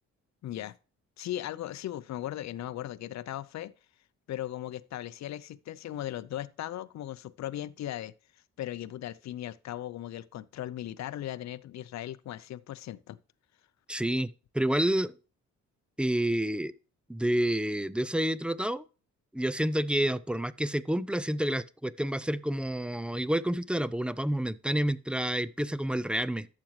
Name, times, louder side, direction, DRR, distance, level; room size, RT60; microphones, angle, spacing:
voice 1, 0.4-0.8 1.2-3.7 4.3-8.1 8.6-13.2, left 13 dB, 65° left, 0.6 m, -38 dB
voice 2, 13.9-15.1 16.0-16.7 17.1-18.8 19.3-26.5, right 1 dB, 5° right, 0.4 m, -29 dB
11.5 x 7.6 x 3.2 m
cardioid pair, 90°, 30 cm